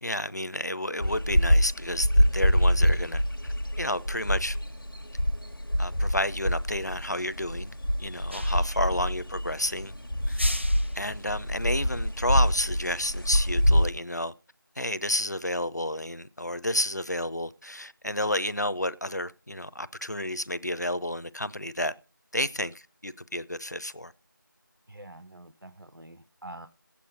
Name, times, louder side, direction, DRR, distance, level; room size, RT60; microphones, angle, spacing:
voice 1, 0.0-3.2 3.8-4.6 5.8-7.7 8.0-9.9 10.3-10.4 10.9-14.3 14.8-21.9 22.3-24.1, left 1 dB, 55° left, 0.6 m, -31 dB
sound 1, 1.0-13.9, equal, 85° left, 1.4 m, -25 dB
sound 2, 8.3-8.9 10.2-11.1, left 1 dB, 35° right, 0.6 m, -37 dB
voice 2, 24.9-26.7, right 1 dB, 85° right, 1.0 m, -46 dB
9.0 x 8.5 x 9.3 m
figure-of-eight pair, 180°, 11 cm